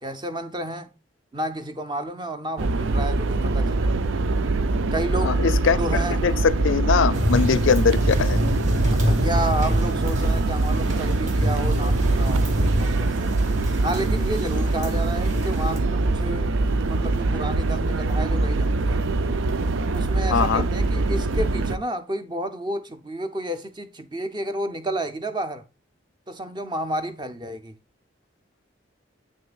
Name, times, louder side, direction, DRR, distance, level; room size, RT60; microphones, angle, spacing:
voice 1, 0.0-0.9 1.3-3.9 4.9-5.5 5.7-6.2 8.9-13.3 13.8-16.5 16.8-19.1 19.9-25.6 26.3-27.7, right 1 dB, 25° right, 0.6 m, -31 dB
sound 1, 2.6-21.8, right 2 dB, 80° right, 0.5 m, -23 dB
voice 2, 5.2-5.8 6.2-8.4 20.3-20.6, left 6 dB, 80° left, 0.5 m, -21 dB
sound 2, 7.1-15.8, left 1 dB, 40° right, 1.7 m, -28 dB
7.9 x 6.4 x 2.4 m
head